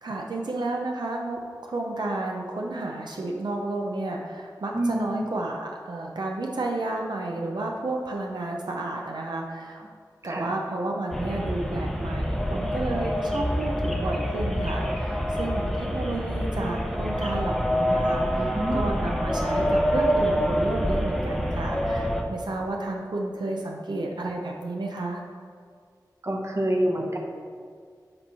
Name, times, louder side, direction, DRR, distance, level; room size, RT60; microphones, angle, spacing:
voice 1, 0.0-9.8 10.2-25.2, right 2 dB, 80° right, 0 dB, 0.6 m, -31 dB
voice 2, 4.7-5.2 10.2-10.5 18.4-18.9 26.2-27.2, right 1 dB, 40° right, 1 dB, 0.9 m, -27 dB
sound 1, 11.1-22.2, equal, ahead, 0.6 m, -26 dB
7.8 x 3.0 x 5.5 m, 2.1 s
wide cardioid pair, 75°, 7 cm